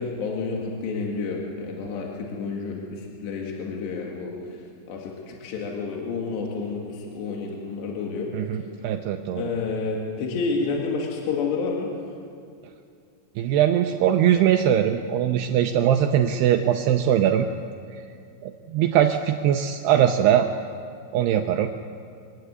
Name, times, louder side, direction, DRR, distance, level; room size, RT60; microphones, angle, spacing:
voice 1, 0.0-8.3 9.4-11.9, left 4 dB, 70° left, -1 dB, 4.1 m, -30 dB
voice 2, 8.3-9.5 13.4-17.5 18.4-20.5 21.1-21.7, right 10 dB, 80° right, 5 dB, 2.6 m, -21 dB
24.0 x 15.0 x 9.7 m, 2.5 s
omnidirectional pair, 5.2 m